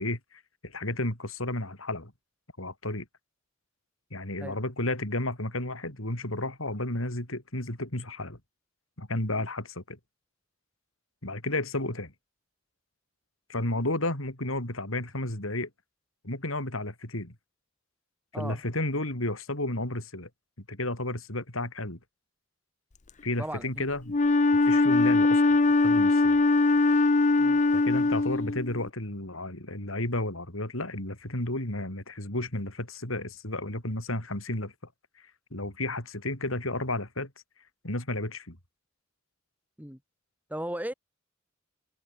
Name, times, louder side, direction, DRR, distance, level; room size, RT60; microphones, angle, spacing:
voice 1, 0.0-2.1 2.6-3.1 4.1-8.4 9.0-10.0 11.2-12.1 13.5-15.7 16.2-17.3 18.3-20.3 20.7-22.0 23.2-24.1 24.6-25.4 25.8-26.4 27.7-34.7 35.5-37.3 37.8-38.6, left 1 dB, 75° left, 6.2 m, -32 dB
voice 2, 23.4-23.9 27.4-27.6 39.8-40.0 40.5-40.9, right 1 dB, 10° right, 7.0 m, -36 dB
Wind instrument woodwind instrument, 24.1-28.8, left 3 dB, 35° left, 0.6 m, -22 dB
head